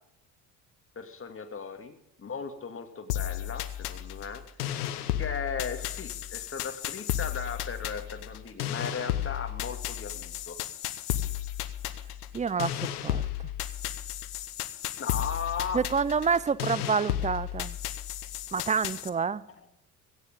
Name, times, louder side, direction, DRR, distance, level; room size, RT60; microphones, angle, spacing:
voice 1, 1.0-4.9 5.2-10.6 15.0-15.8, left 6 dB, 30° left, 2.3 m, -37 dB
sound 1, 3.1-19.1, left 12 dB, 80° left, 1.0 m, -34 dB
voice 2, 12.3-13.2 15.7-17.8 18.5-19.4, right 6 dB, 15° right, 0.6 m, -28 dB
17.0 x 15.5 x 3.8 m
hypercardioid pair, 55°, 45 cm